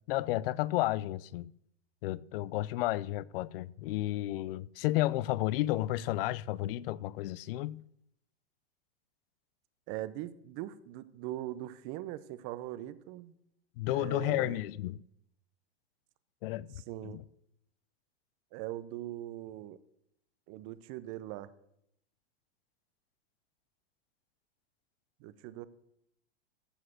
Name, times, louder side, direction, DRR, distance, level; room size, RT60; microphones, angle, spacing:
voice 1, 0.0-1.5 2.0-7.8 13.8-15.0 16.4-16.7 17.0-17.2, left 16 dB, 60° left, 0.5 m, -32 dB
voice 2, 9.9-13.3 13.9-14.6 16.8-17.2 18.5-19.8 20.5-21.5 25.2-25.7, right 14 dB, 40° right, 0.7 m, -41 dB
14.5 x 4.8 x 6.3 m
supercardioid pair, 135°, 32 cm